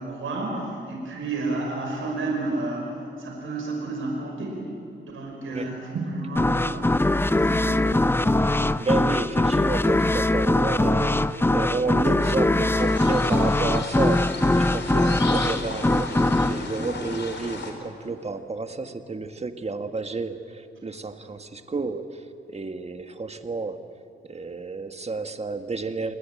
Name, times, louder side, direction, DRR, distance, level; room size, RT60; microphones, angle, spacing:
voice 1, 0.0-2.9 3.2-4.6 5.0-8.1, right 2 dB, 85° right, -1 dB, 5.7 m, -31 dB
sound 1, 6.4-17.8, left 2 dB, 10° left, 0.6 m, -22 dB
voice 2, 8.8-23.9 24.2-26.1, right 3 dB, 30° right, 7 dB, 1.7 m, -31 dB
sound 2, 12.7-17.7, left 3 dB, 60° left, 4.3 m, -36 dB
28.0 x 20.0 x 9.2 m, 2.8 s
cardioid pair, 85°, 20 cm